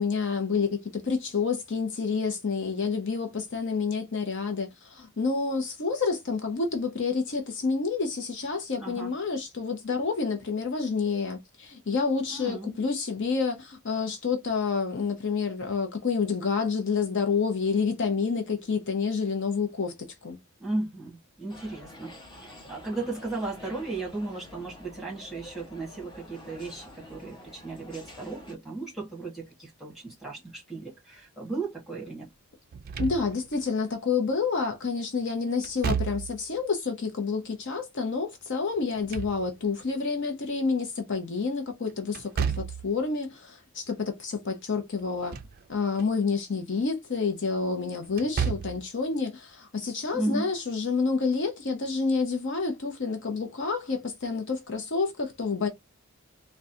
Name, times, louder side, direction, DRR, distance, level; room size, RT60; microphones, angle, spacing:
voice 1, 0.0-19.9 20.2-20.4 33.0-42.3 42.6-45.4 45.7-55.7, left 4 dB, 55° left, 0.7 m, -29 dB
voice 2, 8.8-9.1 12.3-12.8 20.6-22.1 22.4-32.3 50.1-50.5, right 2 dB, ahead, 1.6 m, -35 dB
sound 1, 21.5-28.5, left 1 dB, 20° left, 1.0 m, -48 dB
Slam / Thump thud, 32.7-33.6 35.6-36.5 38.8-39.8 42.1-42.9 45.0-45.6 46.0-46.1 48.1-48.9, right 7 dB, 40° right, 0.3 m, -32 dB
3.7 x 2.2 x 2.7 m
head